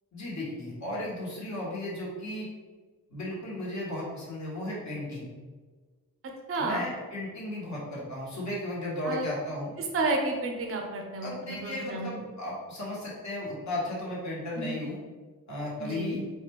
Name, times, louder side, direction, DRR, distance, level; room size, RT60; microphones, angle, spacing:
voice 1, 0.1-2.5 3.1-5.3 6.6-9.7 11.2-15.0 15.5-16.2, left 1 dB, 50° left, -6 dB, 1.3 m, -35 dB
voice 2, 6.5-6.8 9.1-9.3 9.8-12.1 14.6-14.8 15.8-16.2, right 3 dB, 40° right, 2 dB, 0.5 m, -31 dB
4.1 x 2.2 x 3.0 m, 1.4 s
wide cardioid pair, 100°, 35 cm